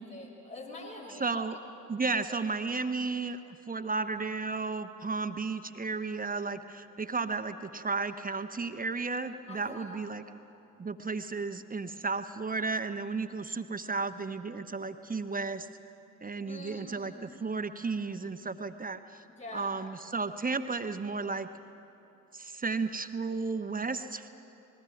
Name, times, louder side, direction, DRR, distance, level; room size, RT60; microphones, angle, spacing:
voice 1, 0.0-1.4 9.5-10.0 16.5-17.6 19.3-19.8, left 2 dB, 90° left, -7 dB, 3.5 m, -45 dB
voice 2, 1.2-1.6 1.9-3.4 3.7-10.2 10.8-15.7 16.2-19.0 19.5-21.5 22.3-24.3, right 4 dB, 20° right, 9 dB, 1.0 m, -33 dB
27.0 x 20.5 x 5.9 m, 2.9 s
figure-of-eight pair, 45°, 46 cm